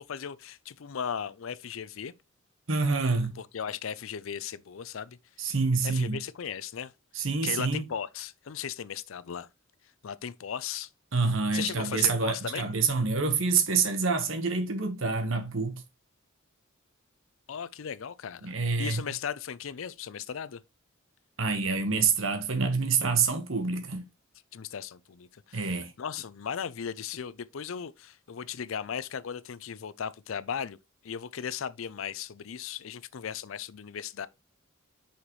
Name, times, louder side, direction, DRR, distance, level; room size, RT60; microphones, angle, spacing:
voice 1, 0.0-2.1 3.4-5.2 5.8-6.9 7.4-9.5 10.0-10.9 11.5-12.6 17.5-18.5 18.8-20.6 24.5-30.8 31.0-34.3, left 7 dB, 75° left, 0.5 m, -37 dB
voice 2, 2.7-3.4 5.4-6.2 7.1-7.9 11.1-15.8 18.4-19.0 21.4-24.0 25.5-25.9, right 4 dB, 70° right, 1.2 m, -27 dB
6.1 x 5.8 x 3.1 m
head